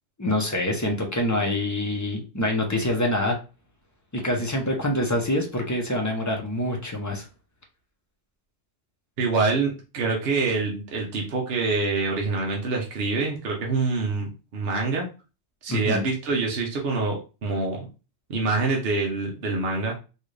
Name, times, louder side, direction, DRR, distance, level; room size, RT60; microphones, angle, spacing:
voice 1, 0.2-3.4 4.1-7.2 15.7-16.0, left 1 dB, 20° left, 1 dB, 0.6 m, -25 dB
voice 2, 9.2-15.1 15.6-17.8 18.3-20.0, right 3 dB, 55° right, 0 dB, 1.0 m, -26 dB
4.2 x 2.5 x 3.2 m, 0.33 s
omnidirectional pair, 1.3 m